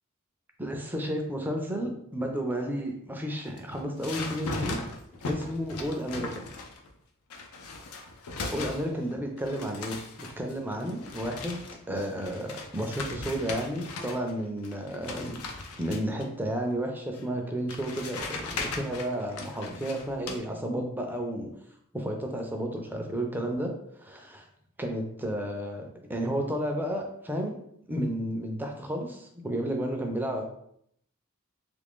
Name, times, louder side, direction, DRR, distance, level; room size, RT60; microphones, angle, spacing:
voice 1, 0.6-4.8 5.3-6.5 8.5-15.3 15.8-21.5 21.9-24.4 24.8-27.6 27.9-30.4, equal, 10° right, 2 dB, 0.4 m, -32 dB
sound 1, 3.5-6.9 7.3-9.1 9.4-14.3 14.6-16.3 17.1-17.2 17.7-20.4, left 3 dB, 80° left, 0.5 m, -38 dB
3.1 x 2.5 x 3.5 m, 0.70 s
head